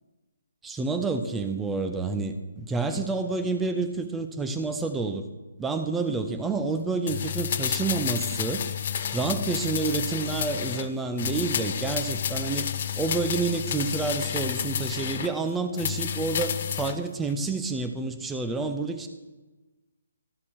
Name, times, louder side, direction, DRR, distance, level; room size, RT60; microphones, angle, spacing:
voice 1, 0.6-5.2 5.6-8.6 9.1-12.7 13.0-19.1, right 4 dB, 10° right, 7 dB, 0.7 m, -29 dB
sound 1, 7.1-10.9 11.2-15.3 15.7-17.0 17.3-17.4, left 9 dB, 45° left, 0.6 m, -30 dB
13.5 x 5.8 x 6.2 m, 1.2 s
figure-of-eight pair, 145°, 0 cm